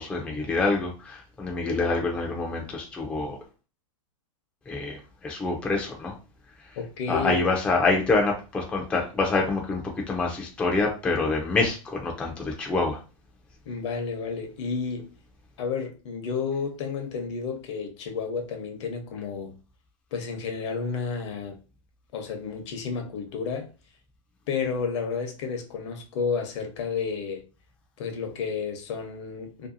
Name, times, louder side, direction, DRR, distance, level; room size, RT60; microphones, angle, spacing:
voice 1, 0.0-3.4 4.7-6.1 7.1-9.8 10.1-13.0, left 3 dB, 5° left, 0.3 m, -26 dB
voice 2, 6.8-7.4 13.7-15.1 15.6-19.5 20.1-21.6 22.1-23.7 24.5-27.4 28.0-29.7, left 5 dB, 55° left, 0.7 m, -31 dB
2.6 x 2.2 x 2.5 m
hypercardioid pair, 135°, 17 cm